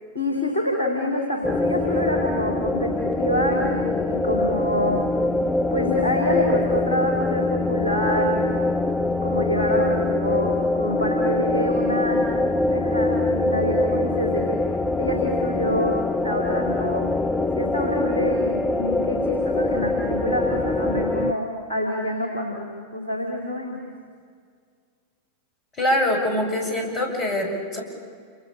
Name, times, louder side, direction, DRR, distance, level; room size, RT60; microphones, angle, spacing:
voice 1, 0.1-5.0 5.7-8.7 9.2-12.2 12.5-15.9 16.2-17.0 17.5-23.8, equal, 75° left, 0 dB, 4.7 m, -26 dB
sound 1, 1.4-21.3, left 2 dB, 10° left, 1.3 m, -24 dB
voice 2, 25.8-27.8, left 1 dB, 30° left, 1 dB, 7.9 m, -24 dB
29.5 x 28.5 x 7.1 m, 2.1 s
figure-of-eight pair, 90°, 0 cm